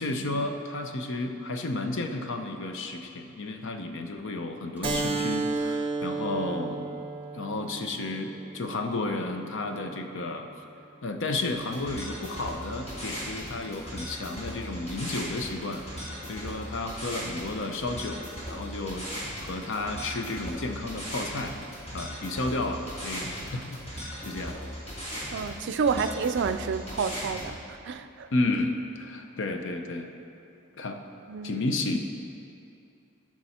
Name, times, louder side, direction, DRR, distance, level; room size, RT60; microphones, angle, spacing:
voice 1, 0.0-6.9 7.3-10.5 11.0-21.6 21.9-24.6 28.3-30.1 30.8-31.0 31.4-32.0, left 2 dB, 65° left, 5 dB, 0.7 m, -32 dB
Slam, 2.7-6.6 6.8-7.3, right 1 dB, 10° right, 1.2 m, -51 dB
Keyboard (musical), 4.8-10.0, right 3 dB, 25° right, 0.8 m, -33 dB
sound 1, 11.5-27.5, equal, 30° left, 2.5 m, -38 dB
voice 2, 25.3-28.3 31.3-31.7, right 5 dB, 60° right, 11 dB, 0.4 m, -29 dB
13.0 x 6.1 x 4.3 m, 2.6 s
head